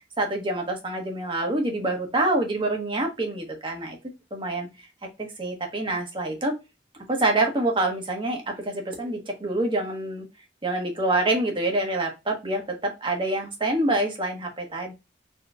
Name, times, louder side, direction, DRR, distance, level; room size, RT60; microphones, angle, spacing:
voice 1, 0.2-4.0 4.3-4.7 5.4-6.5 7.1-10.3 10.6-14.9, right 2 dB, 30° right, 2 dB, 1.3 m, -26 dB
4.3 x 3.1 x 2.4 m, 0.24 s
head